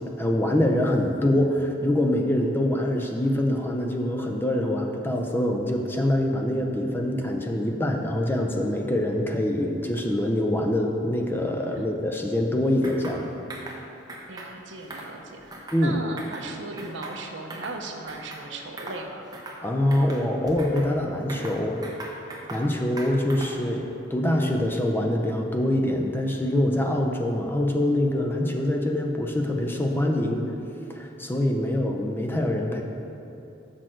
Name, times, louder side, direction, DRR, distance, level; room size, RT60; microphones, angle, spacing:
voice 1, 0.0-13.3 15.7-16.0 19.6-21.9 22.5-30.5 30.9-32.8, left 1 dB, 10° left, 2 dB, 0.5 m, -25 dB
sound 1, 12.8-13.2 13.5-13.8 14.1-14.5 14.8-15.9 16.2-16.5 16.8-17.8 18.1-18.4 18.8-19.0 19.3-19.6 19.9-20.9 21.3-22.7 23.0-23.7, right 1 dB, 20° right, 0.7 m, -40 dB
voice 2, 14.3-19.3, right 2 dB, 75° right, 4 dB, 0.7 m, -37 dB
6.3 x 6.2 x 4.5 m, 2.9 s
head